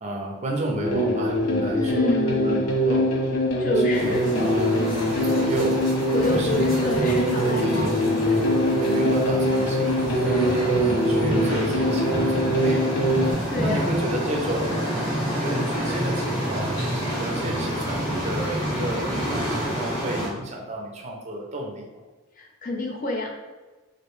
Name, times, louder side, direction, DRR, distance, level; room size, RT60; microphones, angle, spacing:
voice 1, 0.0-3.1 3.8-4.9 5.2-5.8 6.2-7.9 8.8-10.2 10.5-13.0 13.6-15.0 15.4-19.1 19.5-21.9, right 1 dB, 30° right, 0 dB, 0.5 m, -32 dB
sound 1, 0.8-13.3, equal, 85° left, 0.7 m, -23 dB
voice 2, 1.6-2.6 3.6-4.4 6.1-8.6 13.5-13.9 22.4-23.3, left 2 dB, 40° left, 0 dB, 0.4 m, -29 dB
sound 2, 3.9-20.3, equal, 20° left, 0.9 m, -28 dB
3.1 x 2.6 x 3.0 m, 1.2 s
head